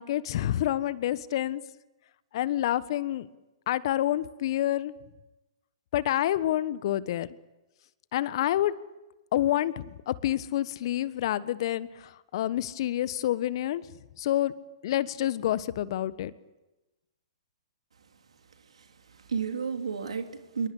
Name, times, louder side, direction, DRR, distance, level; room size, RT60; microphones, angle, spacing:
voice 1, 0.0-1.6 2.3-3.3 3.7-4.9 5.9-7.3 8.1-8.7 9.3-13.8 14.2-14.5 14.8-16.3, left 13 dB, 55° left, 16 dB, 1.3 m, -28 dB
voice 2, 18.7-20.7, right 6 dB, 75° right, 6 dB, 3.1 m, -33 dB
27.0 x 23.5 x 8.5 m, 1.0 s
figure-of-eight pair, 115°, 3 cm